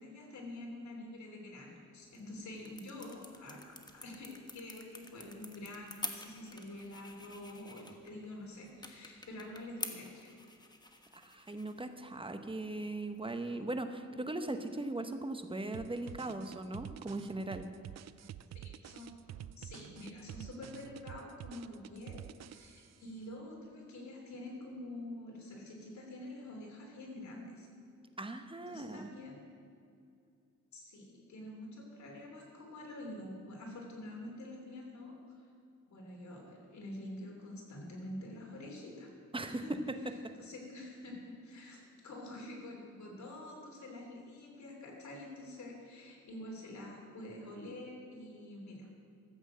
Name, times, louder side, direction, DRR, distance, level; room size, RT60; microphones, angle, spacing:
voice 1, 0.0-10.3 12.6-12.7 18.5-19.1 19.6-27.7 28.7-29.4 30.7-35.4 35.9-39.1 39.5-39.8 40.4-48.9, left 1 dB, 75° left, 0 dB, 3.3 m, -47 dB
sound 1, 2.0-13.5, left 2 dB, 15° left, 1.2 m, -49 dB
voice 2, 11.1-17.7 28.2-29.1 39.3-39.6, right 2 dB, 20° right, 7 dB, 1.0 m, -39 dB
sound 2, 15.7-23.0, right 11 dB, 65° right, 0.5 m, -49 dB
13.0 x 8.1 x 7.5 m, 2.4 s
cardioid pair, 85°, 29 cm